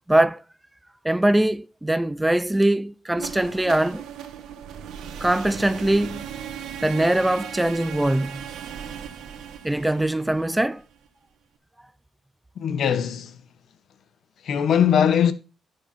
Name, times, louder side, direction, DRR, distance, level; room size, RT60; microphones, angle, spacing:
voice 1, 0.1-0.4 1.0-4.0 5.2-6.3 6.8-8.5 9.6-10.8, right 1 dB, 10° right, 0.4 m, -22 dB
sound 1, 3.1-11.1, right 9 dB, 85° right, 1.3 m, -37 dB
voice 2, 12.6-13.4 14.4-15.3, left 8 dB, 65° left, 1.2 m, -20 dB
10.5 x 6.7 x 4.2 m
cardioid pair, 90°, 0 cm